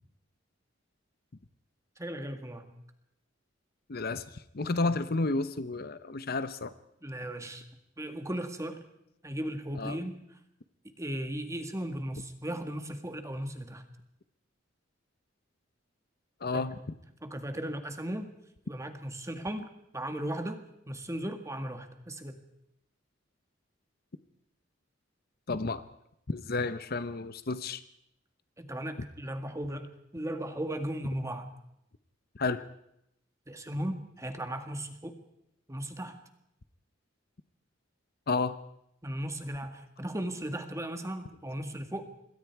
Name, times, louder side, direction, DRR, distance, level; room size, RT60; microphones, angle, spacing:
voice 1, 2.0-2.7 7.0-7.6 8.0-8.8 9.2-10.2 11.0-13.8 16.5-16.6 17.2-18.3 18.7-19.7 19.9-20.6 20.9-22.4 28.6-31.5 33.5-35.2 35.7-36.2 39.0-42.0, right 1 dB, 15° right, 7 dB, 1.9 m, -36 dB
voice 2, 3.9-6.7 9.8-10.0 16.4-16.8 25.5-25.8 26.3-27.8 32.3-32.6 38.3-38.6, left 3 dB, 50° left, 13 dB, 0.8 m, -31 dB
26.5 x 21.0 x 4.7 m, 0.80 s
head